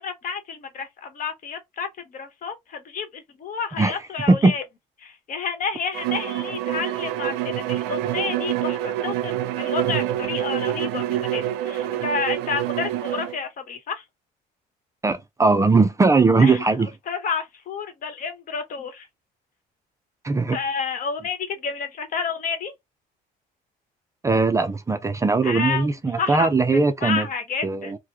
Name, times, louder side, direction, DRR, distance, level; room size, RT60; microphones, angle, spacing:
voice 1, 0.0-4.6 5.0-14.1 16.4-16.7 17.1-19.1 20.5-22.7 25.4-27.9, left 5 dB, 50° left, 1.0 m, -30 dB
Bowed string instrument, 5.9-13.4, right 12 dB, 90° right, 0.4 m, -26 dB
voice 2, 15.0-16.9 20.2-20.6 24.2-27.3 27.6-28.0, right 3 dB, 20° right, 0.4 m, -19 dB
3.0 x 2.1 x 3.4 m
cardioid pair, 110°, 17 cm